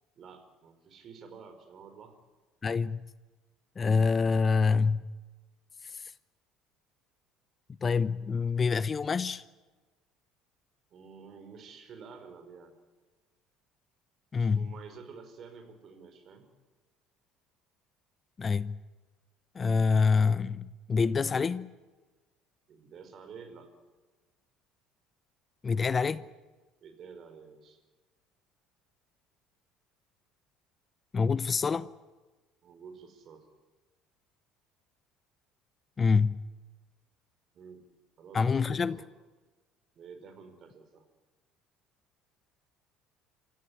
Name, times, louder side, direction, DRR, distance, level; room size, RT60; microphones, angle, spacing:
voice 1, 0.1-2.2 10.9-12.7 14.4-16.5 22.7-23.7 26.8-27.8 32.6-33.5 37.5-37.8 38.2-39.1 39.9-41.0, right 5 dB, 50° right, 5.0 m, -49 dB
voice 2, 2.6-3.1 3.8-5.1 5.8-6.1 7.8-9.4 14.3-14.7 18.4-18.8 19.5-21.7 25.6-26.3 31.1-31.9 36.0-36.4 38.3-39.0, left 5 dB, 35° left, 0.8 m, -26 dB
27.5 x 15.0 x 9.8 m
hypercardioid pair, 70°, 0 cm